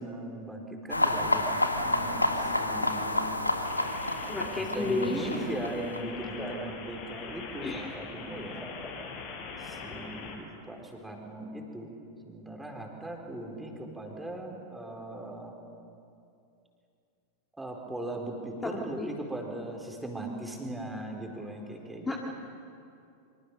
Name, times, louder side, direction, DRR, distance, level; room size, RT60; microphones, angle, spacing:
voice 1, 0.0-3.2 4.2-8.7 9.6-12.0 12.3-15.5 17.6-22.1, right 1 dB, 5° right, 1 dB, 4.4 m, -39 dB
sound 1, 0.9-6.0, left 1 dB, 85° left, 1.6 m, -29 dB
sound 2, 3.6-10.3, left 5 dB, 45° left, 5.4 m, -42 dB
voice 2, 4.3-5.4 6.4-6.7 7.6-7.9 8.6-8.7 18.6-18.7 19.0-19.1 22.1-22.2, left 3 dB, 15° left, -1 dB, 2.3 m, -32 dB
26.0 x 25.0 x 6.7 m, 2.6 s
figure-of-eight pair, 90°, 0 cm